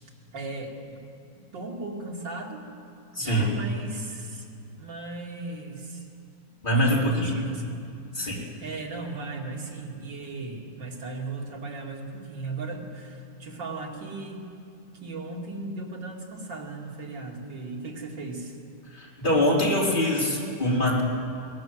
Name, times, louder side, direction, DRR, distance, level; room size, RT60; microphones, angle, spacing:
voice 1, 0.3-1.0 1.4-2.7 3.2-4.5 4.8-6.1 6.8-7.8 8.2-14.4 15.0-18.6, right 3 dB, 80° right, 0 dB, 3.2 m, -37 dB
voice 2, 3.1-3.5 6.6-7.3 8.1-8.4 18.9-21.0, equal, 25° left, -4 dB, 4.3 m, -23 dB
22.0 x 18.5 x 7.8 m, 2.5 s
omnidirectional pair, 2.0 m